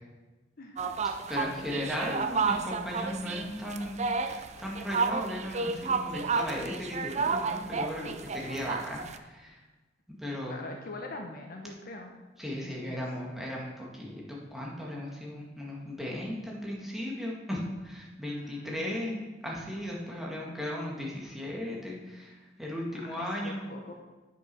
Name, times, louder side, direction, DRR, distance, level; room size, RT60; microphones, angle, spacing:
voice 1, 0.6-1.0 1.4-1.7 2.0-2.2 10.5-12.1 12.6-13.0 18.2-19.3 23.0-24.0, left 2 dB, 50° left, 2 dB, 1.0 m, -43 dB
sound 1, 0.8-9.2, right 4 dB, 40° right, 0.5 m, -31 dB
voice 2, 1.3-9.6 10.1-10.6 12.4-23.6, left 1 dB, ahead, -4 dB, 1.9 m, -36 dB
9.3 x 6.2 x 5.4 m, 1.2 s
head